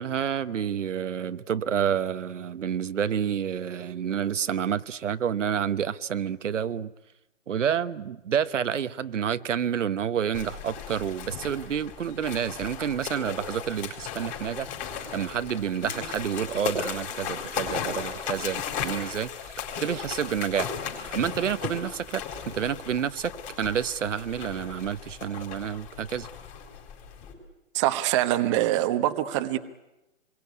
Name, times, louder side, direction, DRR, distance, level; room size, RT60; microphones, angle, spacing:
voice 1, 0.0-6.9 7.5-14.7 15.1-22.2 22.5-23.3 23.6-26.3, right 8 dB, 70° right, 1.2 m, -29 dB
sound 1, 10.3-27.3, left 7 dB, 20° left, 4.6 m, -36 dB
voice 2, 27.7-29.6, right 14 dB, 25° right, 1.3 m, -24 dB
27.0 x 22.0 x 9.6 m
hypercardioid pair, 160°, 38 cm